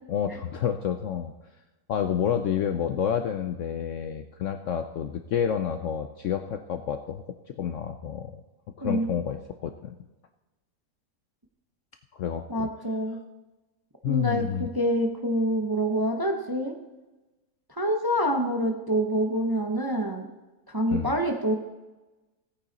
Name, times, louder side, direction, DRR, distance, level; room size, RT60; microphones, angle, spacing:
voice 1, 0.1-1.3 1.9-8.4 8.8-9.9 12.1-12.7 14.0-14.7 20.9-21.1, left 8 dB, 65° left, 8 dB, 0.8 m, -29 dB
voice 2, 12.5-13.2 14.0-16.7 17.8-20.3 20.7-21.6, equal, 20° right, 3 dB, 0.6 m, -26 dB
16.0 x 8.7 x 4.1 m, 1.1 s
omnidirectional pair, 1.7 m